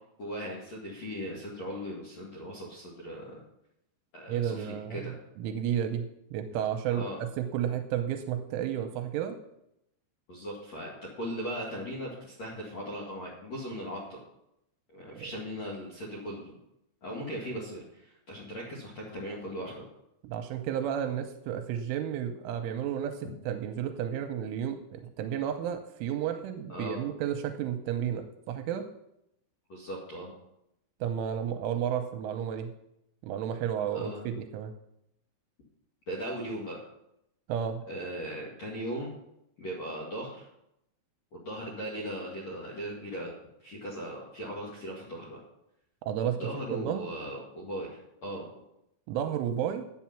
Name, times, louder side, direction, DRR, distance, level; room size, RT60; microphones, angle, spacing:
voice 1, 0.2-3.4 4.1-5.2 6.9-7.2 10.3-14.2 14.9-16.6 17.0-19.8 26.7-27.0 29.7-30.3 33.9-34.2 36.1-36.9 37.9-39.1 39.6-40.5 41.3-43.3 43.6-45.4 46.4-48.5, equal, 50° left, -5 dB, 2.1 m, -38 dB
voice 2, 4.3-9.4 15.1-15.3 20.2-28.8 31.0-32.7 33.2-34.7 37.5-37.8 46.0-46.4 46.7-47.1 49.1-49.8, right 9 dB, 85° right, 7 dB, 3.0 m, -32 dB
11.0 x 8.4 x 5.8 m, 0.82 s
omnidirectional pair, 5.7 m